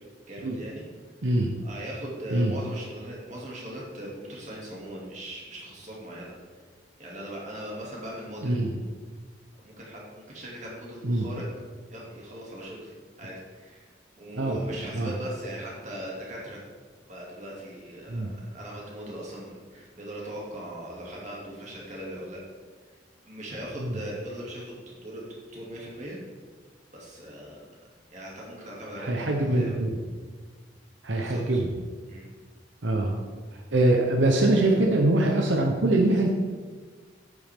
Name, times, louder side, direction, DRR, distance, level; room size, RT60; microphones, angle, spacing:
voice 1, 0.3-0.8 1.6-6.3 7.0-8.6 9.6-11.4 11.9-16.6 17.1-22.4 23.3-26.2 26.9-27.6 28.1-29.8 31.1-31.6 32.1-32.3, right 1 dB, 40° right, -3 dB, 2.4 m, -39 dB
voice 2, 1.2-1.5 2.3-2.5 8.4-8.7 11.0-11.3 14.4-14.6 14.9-15.1 18.1-18.3 23.8-24.0 29.0-30.0 31.0-31.7 32.8-33.2 33.5-36.3, right 1 dB, 85° right, 1 dB, 0.9 m, -23 dB
8.9 x 8.5 x 3.6 m, 1.5 s
head